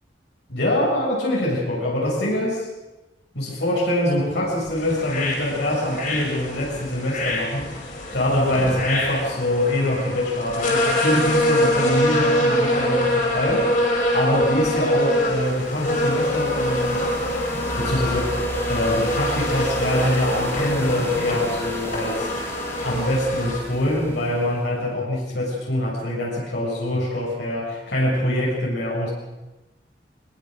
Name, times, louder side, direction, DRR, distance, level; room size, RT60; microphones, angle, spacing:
voice 1, 0.5-2.7 3.3-13.7 14.1-17.1 17.8-22.3 22.8-29.1, left 1 dB, 65° left, -5 dB, 6.7 m, -24 dB
sound 1, 4.8-23.6, left 1 dB, 50° left, 6.6 m, -24 dB
sound 2, 14.8-24.7, equal, 15° left, 3.1 m, -34 dB
23.5 x 22.0 x 6.4 m, 1.1 s
head